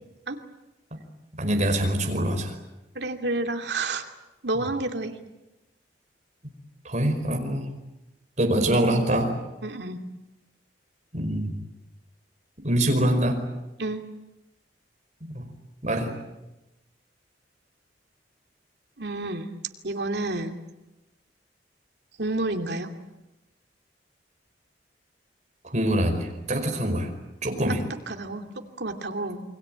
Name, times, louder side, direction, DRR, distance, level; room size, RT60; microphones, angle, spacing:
voice 1, 1.4-2.5 4.5-4.7 6.8-7.7 8.4-9.4 11.1-11.5 12.6-13.5 15.2-15.5 15.8-16.2 25.6-27.1 27.4-27.8, right 1 dB, 40° right, 3 dB, 5.1 m, -24 dB
voice 2, 2.9-4.1 4.4-5.1 9.6-10.0 13.8-14.0 19.0-19.5 19.8-20.6 22.2-22.9 28.1-29.4, right 2 dB, 70° right, 5 dB, 2.6 m, -30 dB
28.5 x 22.5 x 9.0 m, 0.98 s
head